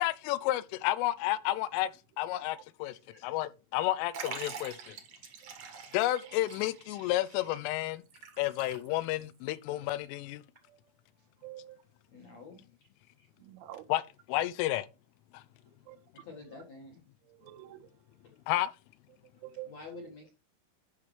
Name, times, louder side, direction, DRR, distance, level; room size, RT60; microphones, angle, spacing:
voice 1, 0.0-1.9 2.2-2.9 3.2-5.0 5.9-8.0 8.4-10.4 13.9-14.0 14.3-14.9 15.3-15.4 18.5-18.7, left 15 dB, 85° left, 3.1 m, -31 dB
voice 2, 2.9-3.3 12.1-12.6 13.2-13.3 16.3-17.0 19.7-20.3, left 3 dB, 60° left, 1.8 m, -48 dB
Liquid, 4.1-9.2 9.5-9.6 10.6-10.7, right 6 dB, 70° right, 1.5 m, -45 dB
voice 3, 11.4-11.8 13.4-13.9 15.9-16.6 17.2-18.0 19.4-19.7, right 15 dB, 85° right, 3.3 m, -49 dB
12.5 x 5.8 x 3.2 m
omnidirectional pair, 5.8 m